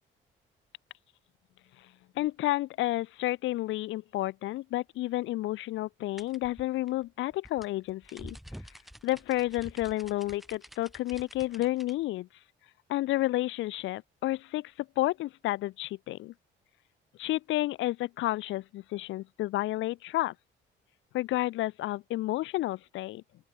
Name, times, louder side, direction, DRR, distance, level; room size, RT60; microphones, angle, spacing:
voice 1, 2.2-8.4 9.0-12.3 12.9-16.3 17.2-20.3 21.1-23.2, left 16 dB, 75° left, 0.4 m, -31 dB
sound 1, 6.2-12.0, equal, ahead, 0.8 m, -49 dB
open air
cardioid pair, 90°, 20 cm